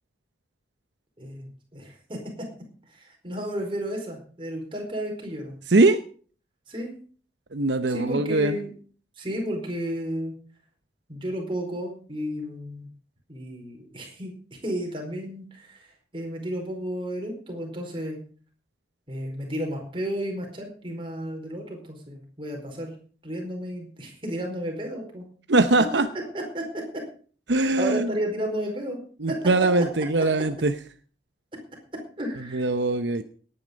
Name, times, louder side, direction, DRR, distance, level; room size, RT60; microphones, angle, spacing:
voice 1, 1.2-2.2 2.9-5.5 6.7-6.9 7.9-8.7 9.2-10.3 11.1-12.9 13.3-14.3 14.6-18.2 19.1-23.0 23.2-25.2 26.3-26.6 27.5-29.0 29.3-29.4 32.2-32.7, equal, 30° right, 1 dB, 4.7 m, -32 dB
voice 2, 5.7-6.0 7.5-8.6 25.5-26.1 27.5-28.1 29.2-30.7 32.5-33.2, right 2 dB, 75° right, 9 dB, 0.8 m, -21 dB
18.0 x 9.8 x 5.3 m, 0.43 s
head